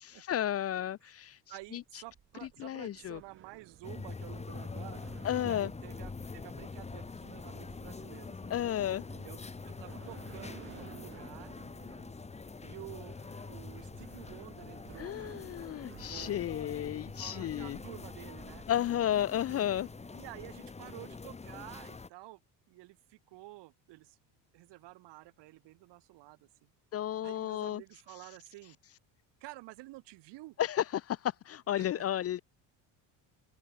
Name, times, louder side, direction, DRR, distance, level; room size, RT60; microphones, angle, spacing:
voice 1, 0.2-1.4 1.7-1.8 2.6-3.2 5.2-5.7 8.5-9.0 15.0-17.8 18.7-19.9 26.9-27.8 30.6-32.4, left 11 dB, 35° left, 0.5 m, -32 dB
sound 1, 1.5-20.2, right 9 dB, 30° right, 0.8 m, -55 dB
voice 2, 1.5-5.0 5.4-8.5 9.2-9.4 9.6-11.5 12.6-13.2 13.5-15.1 16.1-16.5 17.2-18.7 19.5-19.6 20.1-22.4 22.7-24.2 24.5-26.7 27.2-28.8 29.4-30.6 31.8-32.0, right 20 dB, 70° right, 1.9 m, -50 dB
sound 2, 3.8-22.1, left 4 dB, 15° left, 1.6 m, -45 dB
cardioid pair, 130°, 44 cm